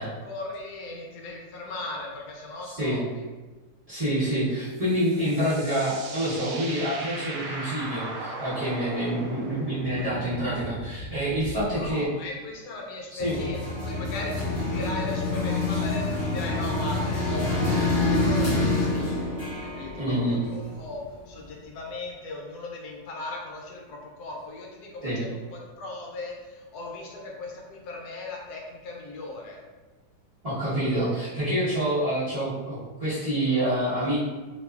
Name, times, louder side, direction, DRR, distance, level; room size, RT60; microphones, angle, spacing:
voice 1, 0.0-3.2 10.0-10.1 11.7-29.6, left 2 dB, 70° left, -1 dB, 1.1 m, -38 dB
voice 2, 2.6-3.0 3.9-12.1 13.1-13.4 20.0-20.4 25.0-25.2 30.4-34.2, right 1 dB, 50° right, -14 dB, 0.4 m, -27 dB
sound 1, 4.8-11.9, right 1 dB, 75° right, 1.2 m, -37 dB
sound 2, 13.2-21.1, left 2 dB, 45° left, 0.7 m, -27 dB
2.8 x 2.3 x 2.3 m, 1.3 s
omnidirectional pair, 1.9 m